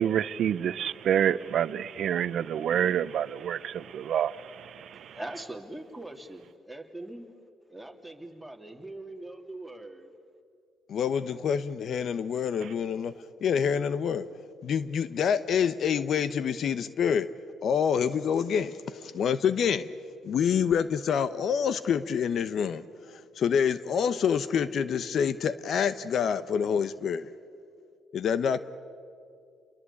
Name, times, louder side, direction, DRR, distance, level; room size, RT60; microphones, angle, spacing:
voice 1, 0.0-5.2 12.6-12.7, right 9 dB, 70° right, 0.8 m, -28 dB
voice 2, 4.9-7.3 7.7-10.1, right 1 dB, 5° right, 3.0 m, -42 dB
voice 3, 10.9-14.3 14.6-17.3 17.6-19.9 20.2-22.8 23.4-27.3 28.1-28.6, left 7 dB, 65° left, 0.9 m, -27 dB
29.5 x 22.5 x 8.6 m
cardioid pair, 90°, 0 cm